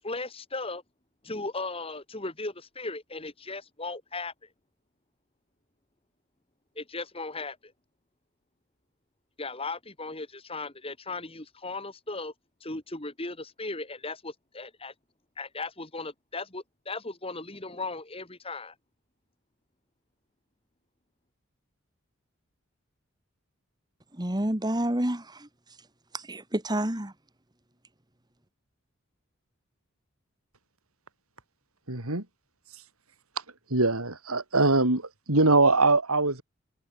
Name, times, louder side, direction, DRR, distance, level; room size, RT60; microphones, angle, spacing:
voice 1, 0.0-0.8 1.2-4.3 6.7-7.7 9.4-12.3 12.6-14.9 15.4-18.7, left 3 dB, 25° left, 3.2 m, -37 dB
voice 2, 24.1-25.5 26.1-27.1, right 1 dB, 20° right, 1.8 m, -29 dB
voice 3, 31.9-32.2 33.7-36.4, right 2 dB, 90° right, 4.7 m, -23 dB
head